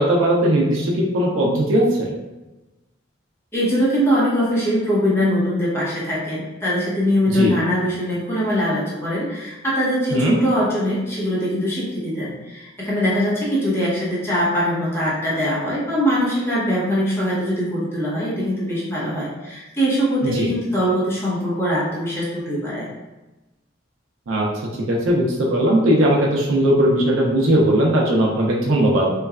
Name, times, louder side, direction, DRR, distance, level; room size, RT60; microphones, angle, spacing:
voice 1, 0.0-2.1 7.3-7.6 10.1-10.4 20.2-20.5 24.3-24.5 24.9-29.1, right 1 dB, 80° right, -2 dB, 0.5 m, -18 dB
voice 2, 3.5-22.9, equal, 15° left, -8 dB, 0.8 m, -22 dB
3.1 x 2.2 x 2.3 m, 1.1 s
head